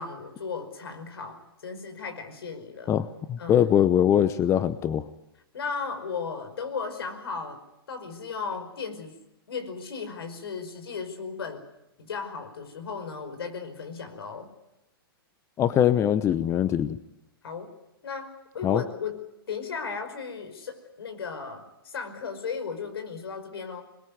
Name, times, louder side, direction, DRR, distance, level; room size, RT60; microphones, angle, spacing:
voice 1, 0.0-3.0 3.4-3.6 5.5-7.6 7.9-9.2 9.5-11.6 12.0-14.5 17.4-17.7 18.0-23.8, left 5 dB, 80° left, 7 dB, 5.3 m, -36 dB
voice 2, 2.9-5.1 15.6-17.0 18.6-18.8, left 10 dB, 20° left, 14 dB, 0.9 m, -22 dB
22.0 x 22.0 x 9.6 m, 0.89 s
hypercardioid pair, 130°, 13 cm